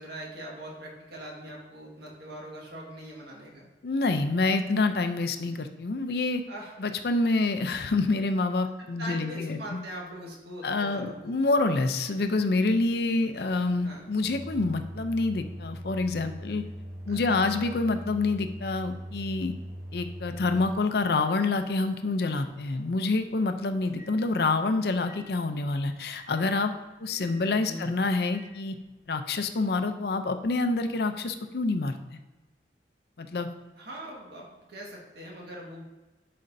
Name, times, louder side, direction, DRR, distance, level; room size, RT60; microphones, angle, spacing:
voice 1, 0.0-3.7 6.5-6.7 8.8-11.3 13.8-14.0 17.1-17.5 27.7-27.9 33.7-35.8, right 1 dB, 65° right, -2 dB, 1.6 m, -42 dB
voice 2, 3.8-6.4 6.8-9.8 10.6-16.6 17.1-19.5 19.9-26.7 27.0-28.8 29.1-32.2 33.2-33.5, left 3 dB, 60° left, 8 dB, 0.5 m, -27 dB
Microwave oven, 12.1-24.6 25.1-25.2 26.2-26.3 27.2-27.4 28.3-28.5, equal, 15° right, 0.7 m, -43 dB
10.5 x 4.2 x 2.6 m, 1.1 s
head